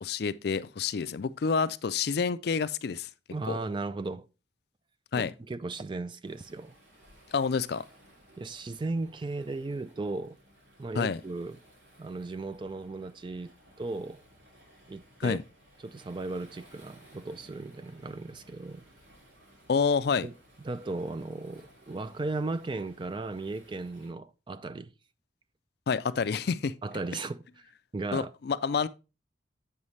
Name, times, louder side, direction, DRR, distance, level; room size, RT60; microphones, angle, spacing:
voice 1, 0.0-3.1 3.5-3.6 5.1-5.3 7.3-7.8 11.0-11.2 15.2-15.4 19.7-20.3 25.9-26.7 28.1-28.9, left 5 dB, 55° left, 0.4 m, -28 dB
voice 2, 3.3-4.3 5.2-6.8 8.4-10.4 10.8-11.6 12.0-13.5 13.8-14.2 14.9-15.4 15.8-18.8 20.2-20.3 20.6-24.9 26.8-27.4 27.9-28.3, right 3 dB, 25° right, 0.3 m, -36 dB
Waves surf, 6.2-24.1, equal, 75° right, 2.8 m, -58 dB
8.0 x 5.5 x 3.2 m
head